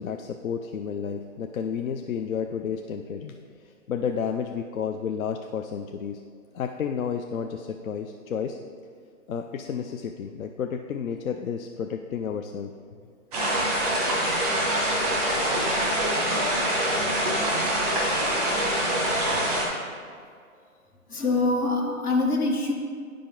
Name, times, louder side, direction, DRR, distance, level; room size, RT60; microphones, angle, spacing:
voice 1, 0.0-3.3 3.9-6.2 6.5-8.6 9.3-12.7, left 7 dB, 65° left, 5 dB, 0.5 m, -31 dB
sound 1, 13.3-19.6, right 1 dB, ahead, 0.5 m, -25 dB
voice 2, 21.1-22.7, left 2 dB, 85° left, -1 dB, 1.8 m, -24 dB
10.5 x 5.1 x 3.8 m, 2.1 s
hypercardioid pair, 150°, 44 cm